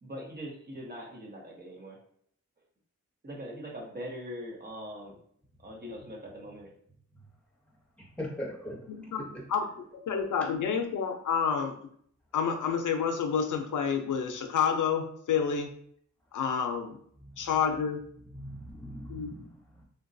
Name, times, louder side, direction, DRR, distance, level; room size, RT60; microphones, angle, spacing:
voice 1, 0.0-2.0 3.2-5.1 5.6-6.7, equal, 30° right, -2 dB, 0.7 m, -42 dB
voice 2, 8.0-9.4 10.4-10.5 17.2-17.6 18.3-19.8, equal, 5° left, -4 dB, 0.9 m, -41 dB
voice 3, 8.9-9.6 9.9-11.8 12.3-15.7 16.3-17.0 17.4-18.0 19.1-19.3, left 7 dB, 85° left, 4 dB, 0.5 m, -29 dB
3.8 x 2.2 x 2.6 m, 0.63 s
wide cardioid pair, 145°, 30 cm